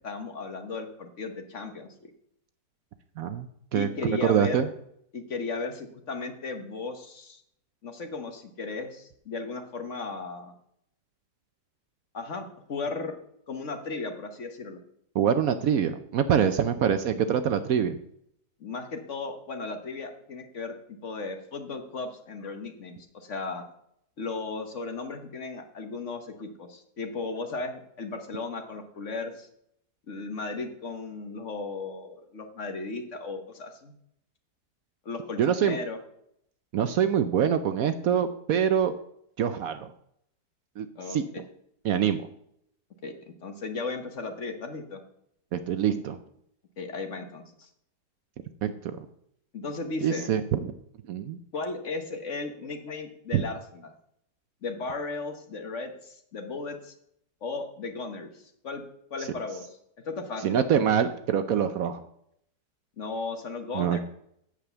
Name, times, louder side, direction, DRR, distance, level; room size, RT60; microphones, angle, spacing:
voice 1, 0.0-2.1 3.7-4.7 5.1-7.4 7.8-10.5 12.1-13.1 13.5-14.8 18.6-20.7 21.0-23.6 24.2-29.5 30.1-33.9 35.0-36.0 40.9-41.4 43.0-43.1 43.4-45.0 46.8-47.7 49.5-50.3 51.5-53.9 54.6-56.9 57.4-58.8 59.1-59.8 60.0-60.6 63.0-64.0, left 3 dB, 50° left, 6 dB, 1.3 m, -36 dB
voice 2, 3.2-4.7 15.1-18.0 35.4-35.8 36.7-38.9 39.4-39.9 40.8-41.2 41.8-42.3 45.5-46.2 48.6-49.0 50.0-50.7 51.1-51.4 53.3-53.4 60.4-62.1 63.7-64.0, right 8 dB, 65° right, 10 dB, 1.0 m, -25 dB
8.3 x 7.5 x 6.8 m, 0.73 s
omnidirectional pair, 1.8 m